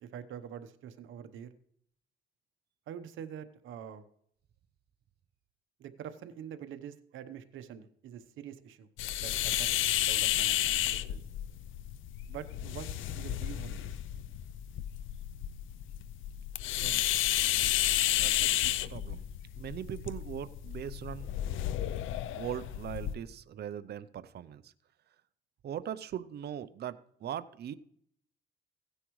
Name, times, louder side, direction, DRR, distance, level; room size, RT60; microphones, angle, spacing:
voice 1, 0.0-1.5 2.9-4.0 5.8-8.9 9.2-9.7 10.0-11.2 12.3-12.9 13.2-13.9, right 9 dB, 80° right, 10 dB, 1.0 m, -45 dB
sound 1, 9.0-23.1, left 13 dB, 80° left, 0.5 m, -32 dB
voice 2, 16.8-17.2 18.2-19.2 19.6-21.3 22.3-24.7 25.6-27.8, right 10 dB, 55° right, 13 dB, 0.6 m, -40 dB
16.0 x 9.8 x 3.1 m, 0.67 s
cardioid pair, 90°, 20 cm